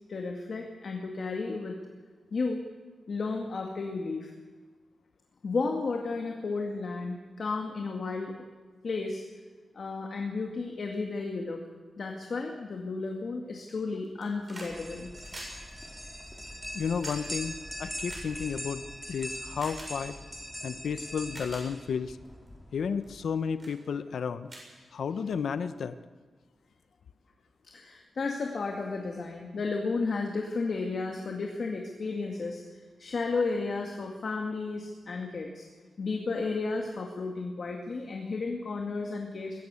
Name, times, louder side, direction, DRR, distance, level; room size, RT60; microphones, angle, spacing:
voice 1, 0.1-1.8 2.3-2.6 3.1-4.3 5.4-8.4 8.8-9.2 9.7-11.6 12.0-15.1 27.6-35.7 36.0-39.6, left 3 dB, 50° left, 2 dB, 2.2 m, -33 dB
sound 1, 14.0-14.7 15.0-18.9 19.5-19.9 20.7-20.8 21.2-21.6 22.2-22.5 23.0-23.3 23.6-23.8 24.1-24.2 24.4-25.4 26.5-26.6, right 1 dB, 25° right, 6.8 m, -47 dB
sound 2, 14.6-23.2, equal, 5° left, 3.5 m, -41 dB
voice 2, 16.7-18.8 19.1-20.2 20.6-22.2 22.7-24.5 24.9-26.0, left 6 dB, 75° left, 12 dB, 0.9 m, -32 dB
21.5 x 16.5 x 8.4 m, 1.4 s
wide cardioid pair, 145°, 0 cm